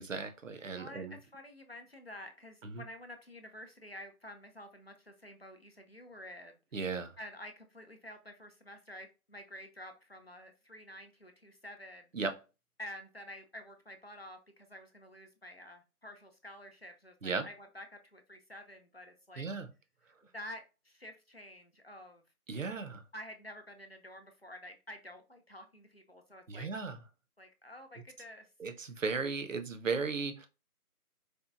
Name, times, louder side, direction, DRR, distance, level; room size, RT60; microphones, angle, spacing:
voice 1, 0.0-1.2 2.6-2.8 6.7-7.1 12.1-12.4 17.2-17.5 19.4-19.7 22.5-23.0 26.5-27.0 28.6-30.5, right 4 dB, 60° right, 9 dB, 0.6 m, -36 dB
voice 2, 0.8-6.6 7.2-12.1 12.8-19.5 20.1-22.2 23.1-26.7 27.4-28.5, left 1 dB, 45° left, 5 dB, 0.5 m, -49 dB
4.3 x 2.5 x 2.4 m, 0.30 s
figure-of-eight pair, 165°, 45 cm